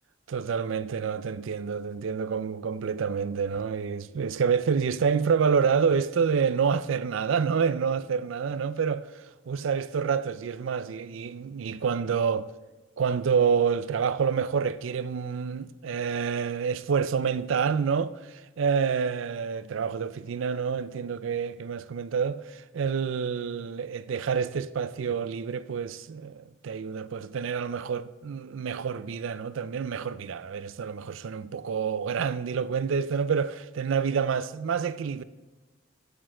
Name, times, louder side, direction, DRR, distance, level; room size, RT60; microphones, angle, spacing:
voice 1, 0.3-12.5 13.0-35.2, right 6 dB, 75° right, 0.4 m, -28 dB
9.0 x 8.3 x 3.8 m
head